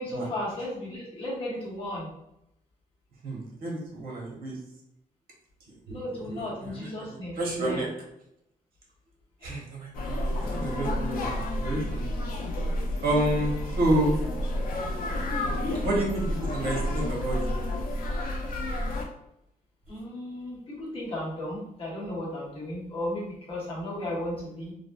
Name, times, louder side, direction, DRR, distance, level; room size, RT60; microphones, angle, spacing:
voice 1, 0.0-2.1 5.9-7.8 19.9-24.7, left 1 dB, 40° left, -5 dB, 0.9 m, -35 dB
voice 2, 3.2-4.6 5.9-7.9 9.4-11.3 11.6-12.0 13.0-14.1 15.8-17.6, right 1 dB, 85° right, -2 dB, 0.9 m, -29 dB
sound 1, 9.9-19.0, left 1 dB, 70° left, 0.5 m, -30 dB
3.3 x 2.0 x 2.2 m, 0.82 s
wide cardioid pair, 165°, 15 cm